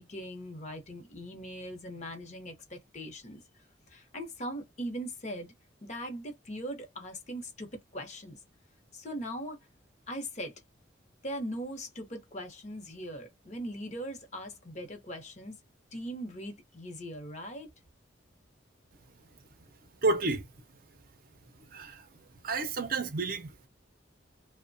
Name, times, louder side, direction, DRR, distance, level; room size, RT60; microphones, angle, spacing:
voice 1, 0.0-3.4 3.9-5.5 5.8-8.4 8.9-9.6 10.1-10.5 11.2-15.6 15.9-17.7, equal, 40° left, 0.8 m, -40 dB
voice 2, 20.0-20.5 21.7-22.1 22.4-23.5, right 3 dB, 50° right, 0.6 m, -30 dB
2.9 x 2.1 x 2.6 m
head